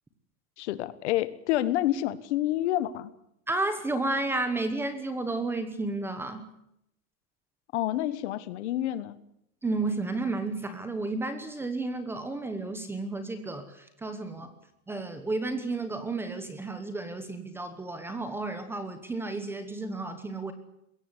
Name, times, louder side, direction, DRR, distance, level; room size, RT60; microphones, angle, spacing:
voice 1, 0.6-3.1 7.7-9.2, left 14 dB, 50° left, 16 dB, 1.4 m, -28 dB
voice 2, 3.5-6.5 9.6-14.5 14.9-20.5, right 2 dB, 5° right, 10 dB, 1.1 m, -32 dB
22.0 x 17.0 x 9.7 m, 0.78 s
supercardioid pair, 180°, 43 cm